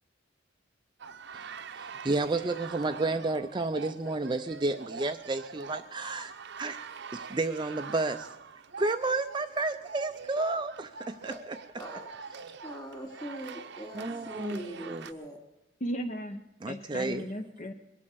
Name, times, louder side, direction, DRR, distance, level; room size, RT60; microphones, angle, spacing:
sound 1, 1.0-15.1, right 5 dB, 60° right, 0.8 m, -44 dB
voice 1, 1.7-6.8 7.1-8.3 8.8-11.3 13.9-15.0 16.6-17.3, right 3 dB, 25° right, 7 dB, 0.5 m, -31 dB
voice 2, 11.8-15.4, right 1 dB, 20° left, 2 dB, 2.8 m, -42 dB
voice 3, 15.8-17.7, equal, 40° left, 5 dB, 0.8 m, -36 dB
22.5 x 8.5 x 6.9 m, 1.0 s
head